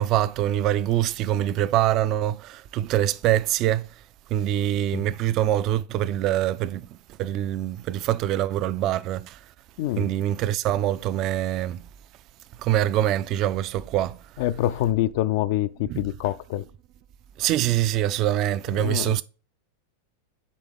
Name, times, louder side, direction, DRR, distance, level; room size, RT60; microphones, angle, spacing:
voice 1, 0.0-3.9 4.3-9.4 10.0-11.9 12.6-14.2 15.9-16.0 17.4-19.2, right 12 dB, 35° right, 0.3 m, -24 dB
voice 2, 9.8-10.1 14.4-16.7 18.8-19.2, left 14 dB, 50° left, 0.3 m, -26 dB
8.5 x 3.5 x 3.3 m
figure-of-eight pair, 90°, 0 cm